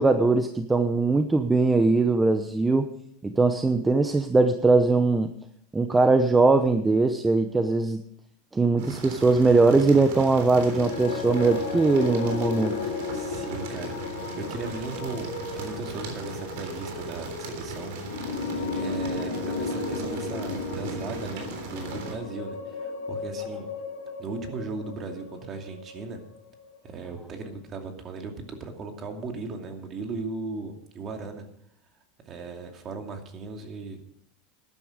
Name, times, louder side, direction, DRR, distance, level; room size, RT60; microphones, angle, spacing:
voice 1, 0.0-2.9 3.2-5.3 5.7-8.0 8.5-12.8, right 3 dB, 15° right, 8 dB, 0.8 m, -21 dB
sound 1, 8.8-22.2, right 4 dB, 70° right, 3.5 m, -38 dB
sound 2, 10.6-26.9, left 4 dB, 85° left, 2.1 m, -34 dB
voice 2, 13.1-23.7 24.2-26.2 26.8-31.5 32.3-34.0, right 4 dB, 35° right, 4 dB, 2.5 m, -37 dB
13.5 x 11.0 x 5.1 m, 0.68 s
supercardioid pair, 120°, 0 cm